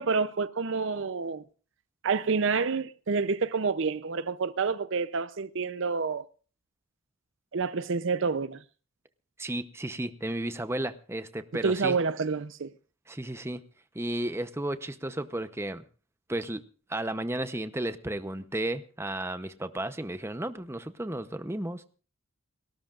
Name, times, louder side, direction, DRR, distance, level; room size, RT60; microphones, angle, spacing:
voice 1, 0.0-1.4 2.0-6.2 7.5-8.6 11.6-12.7, right 4 dB, 60° right, 0.6 m, -28 dB
voice 2, 9.4-12.0 13.1-13.6 13.9-15.8 16.3-16.6 16.9-21.8, right 1 dB, 10° right, 0.7 m, -33 dB
30.0 x 13.0 x 2.5 m
head